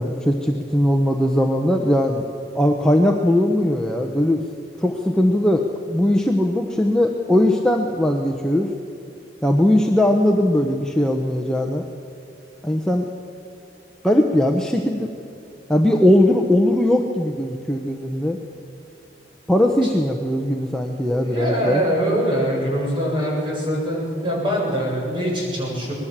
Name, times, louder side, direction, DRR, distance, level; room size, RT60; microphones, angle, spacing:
voice 1, 0.0-2.3 2.5-4.4 4.8-8.7 9.4-11.8 12.6-13.1 14.0-15.1 15.7-18.4 19.5-21.8, left 1 dB, 5° left, 1 dB, 1.0 m, -19 dB
voice 2, 21.1-25.9, equal, 30° right, -3 dB, 7.8 m, -23 dB
25.0 x 20.5 x 7.5 m, 2.5 s
head